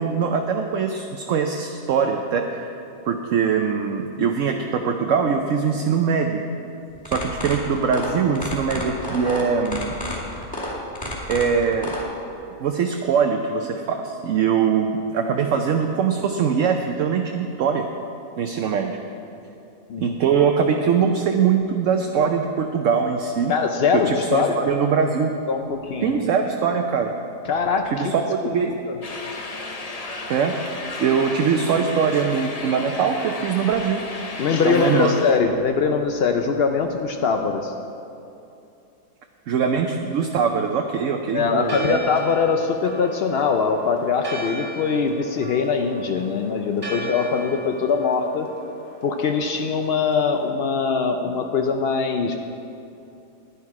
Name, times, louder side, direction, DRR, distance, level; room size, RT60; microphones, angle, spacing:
voice 1, 0.0-2.8 3.0-6.4 7.1-9.9 11.3-12.0 12.6-17.9 18.4-19.0 20.0-23.5 23.9-25.3 26.0-27.1 27.9-28.7 30.3-30.6 31.0-34.0 34.6-35.2 39.5-42.0, right 6 dB, 65° right, 4 dB, 0.9 m, -22 dB
sound 1, 6.9-12.0, left 1 dB, 5° left, 2.3 m, -30 dB
voice 2, 23.5-24.7 25.5-26.2 27.4-28.1 28.4-28.5 28.9-29.0 34.4-37.7 41.3-48.5 49.0-52.4, left 5 dB, 80° left, 4 dB, 0.5 m, -22 dB
sound 2, 29.0-35.4, left 2 dB, 35° left, 0.6 m, -33 dB
Church bell, 41.6-50.5, equal, 20° right, 0.9 m, -38 dB
11.0 x 10.0 x 4.8 m, 2.8 s
omnidirectional pair, 1.7 m